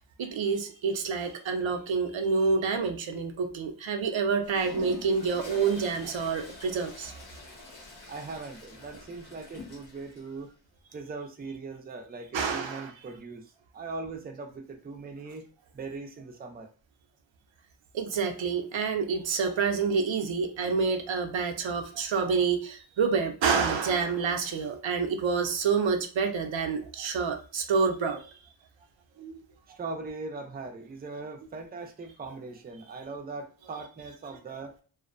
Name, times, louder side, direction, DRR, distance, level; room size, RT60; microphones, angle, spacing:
voice 1, 0.2-7.1 12.3-12.9 17.9-28.3 29.2-29.4 34.5-34.6, right 5 dB, 90° right, 5 dB, 0.5 m, -28 dB
Toilet flush, 4.4-10.2, left 4 dB, 85° left, 0.9 m, -45 dB
voice 2, 8.1-10.5 10.9-15.5 15.7-16.7 29.8-34.7, right 3 dB, 25° right, 3 dB, 0.4 m, -40 dB
2.4 x 2.0 x 2.4 m, 0.39 s
wide cardioid pair, 85°, 44 cm